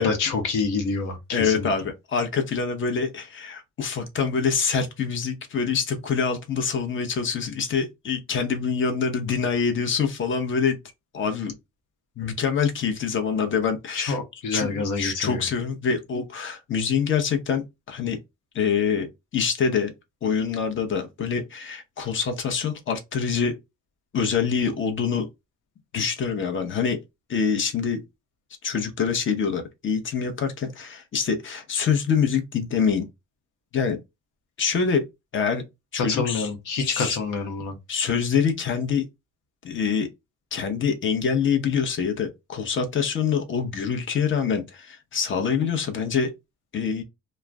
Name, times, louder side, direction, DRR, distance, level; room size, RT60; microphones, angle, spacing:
voice 1, 0.0-1.7 14.0-15.4 36.1-37.7, left 4 dB, 85° left, 0.8 m, -27 dB
voice 2, 1.3-10.8 11.1-11.5 12.2-14.2 14.5-18.2 18.5-19.9 20.2-23.6 24.1-25.3 25.9-27.0 27.3-28.0 28.6-33.1 33.7-34.0 34.6-35.1 35.3-35.6 35.9-36.5 36.8-37.2 37.9-39.1 39.6-40.1 40.5-46.3 46.7-47.0, left 6 dB, 40° left, 0.8 m, -25 dB
2.4 x 2.1 x 3.3 m
cardioid pair, 90°, 30 cm